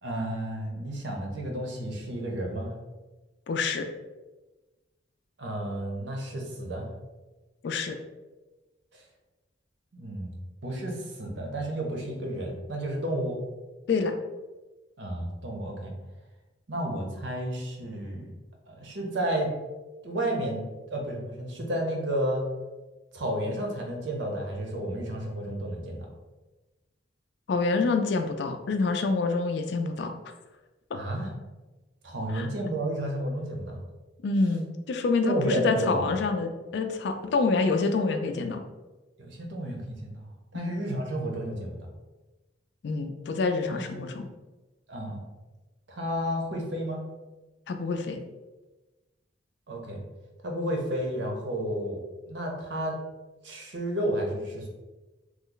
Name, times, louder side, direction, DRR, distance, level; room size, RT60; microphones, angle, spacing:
voice 1, 0.0-2.7 5.4-6.8 8.9-9.0 9.9-10.3 10.6-13.4 15.0-15.9 16.7-18.3 18.7-19.5 20.0-22.4 23.1-26.1 30.9-31.3 32.0-33.8 35.2-36.0 39.2-40.3 40.5-41.8 43.7-44.1 44.9-45.2 45.9-47.0 49.7-50.0 50.4-52.0 52.3-52.9 53.4-54.7, right 1 dB, 70° right, 1 dB, 0.8 m, -31 dB
voice 2, 3.5-3.9 7.6-8.0 13.9-14.1 27.5-30.1 32.3-32.5 34.2-38.6 40.5-40.7 42.8-44.3 47.7-48.2, left 4 dB, 60° left, 6 dB, 0.3 m, -27 dB
3.1 x 2.1 x 3.8 m, 1.2 s
head